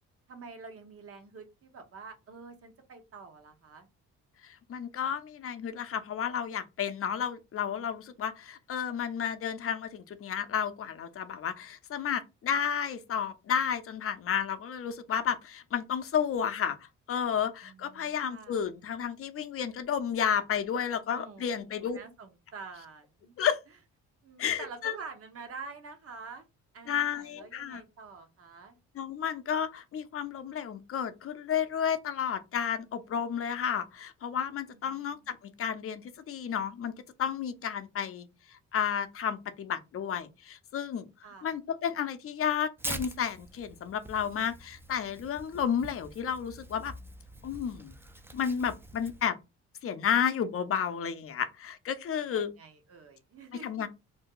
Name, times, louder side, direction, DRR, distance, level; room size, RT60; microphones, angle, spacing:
voice 1, 0.3-3.9 17.6-18.6 21.1-23.4 24.2-26.5 26.7-28.8 34.7-35.4 41.2-41.5 52.3-53.9, right 4 dB, 50° right, 0.9 m, -47 dB
voice 2, 4.4-16.8 17.1-22.0 23.4-23.6 24.4-25.0 26.9-27.8 28.9-38.3 38.7-41.1 41.4-46.9 47.4-47.9 48.3-49.4 49.8-52.5 53.6-53.9, left 8 dB, 50° left, 0.6 m, -32 dB
Tearing, 42.8-49.3, right 1 dB, 10° right, 0.4 m, -44 dB
2.6 x 2.2 x 3.7 m
cardioid pair, 90°, 30 cm